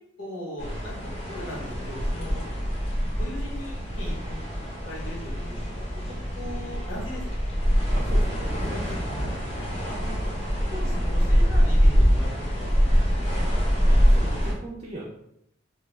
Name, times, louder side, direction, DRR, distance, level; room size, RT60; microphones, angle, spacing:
voice 1, 0.2-2.8 3.1-4.4 4.8-5.2 5.4-5.6 6.1-7.2 9.0-9.4 9.9-10.2 10.7-12.3 12.6-12.8, equal, 80° left, -5 dB, 1.1 m, -39 dB
sound 1, 0.6-14.5, equal, 35° left, 0.6 m, -24 dB
voice 2, 7.9-9.1 13.9-15.0, right 1 dB, 35° right, -3 dB, 0.3 m, -39 dB
2.2 x 2.2 x 3.0 m, 0.77 s
head